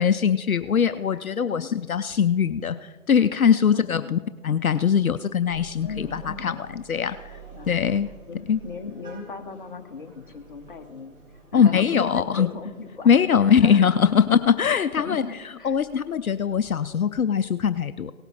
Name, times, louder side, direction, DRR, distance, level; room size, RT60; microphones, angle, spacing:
voice 1, 0.0-4.2 4.4-6.5 6.9-7.3 7.7-8.1 8.5-8.6 11.5-12.5 13.1-15.2 15.6-18.1, left 7 dB, 70° left, 11 dB, 0.6 m, -21 dB
voice 2, 1.1-1.7 3.7-4.1 5.8-6.6 7.5-8.0 8.3-11.2 11.5-14.2 14.7-16.0, left 4 dB, 35° left, 4 dB, 1.0 m, -37 dB
sound 1, 5.5-17.1, right 5 dB, 80° right, 4.4 m, -49 dB
18.0 x 8.1 x 4.1 m, 1.4 s
figure-of-eight pair, 150°, 43 cm